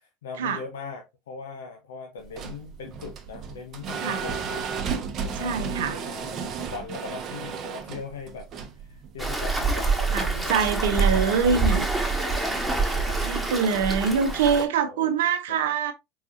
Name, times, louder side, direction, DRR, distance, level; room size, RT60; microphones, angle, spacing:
voice 1, 0.0-4.7 5.2-8.5 8.8-11.5 12.0-13.6 14.7-15.6, left 5 dB, 70° left, 0.8 m, -41 dB
sound 1, 2.2-10.1, right 6 dB, 40° right, 0.9 m, -34 dB
voice 2, 5.4-6.0 10.1-11.9 13.2-15.9, right 6 dB, 65° right, 0.8 m, -24 dB
Waves surf, 9.2-14.6, right 3 dB, 5° right, 1.3 m, -26 dB
4.6 x 3.9 x 2.6 m
figure-of-eight pair, 70°, 0 cm